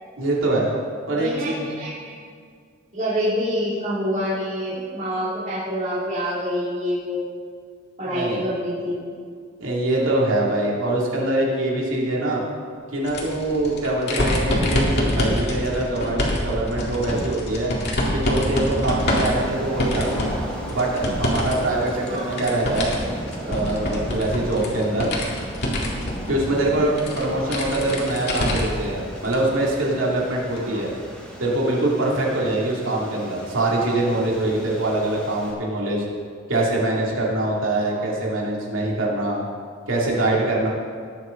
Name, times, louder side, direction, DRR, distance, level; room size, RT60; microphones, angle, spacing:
voice 1, 0.2-0.7 1.1-1.7 8.0-8.4 9.6-12.4 12.9-17.7 18.1-20.3 20.7-22.9 23.4-25.1 26.3-30.9 31.4-36.1 36.5-39.4 39.9-40.7, right 2 dB, 85° right, -4 dB, 2.7 m, -23 dB
voice 2, 1.2-2.1 2.9-7.3 8.0-9.1 22.1-22.4 30.6-30.9 37.9-38.1, equal, 40° right, -10 dB, 2.9 m, -27 dB
sound 1, 13.0-21.5 21.8-28.8 29.2-29.4 30.6-30.7, equal, 55° left, 2.2 m, -25 dB
sound 2, 19.0-35.5, equal, 5° left, 1.9 m, -37 dB
19.0 x 7.8 x 3.9 m, 2.1 s
head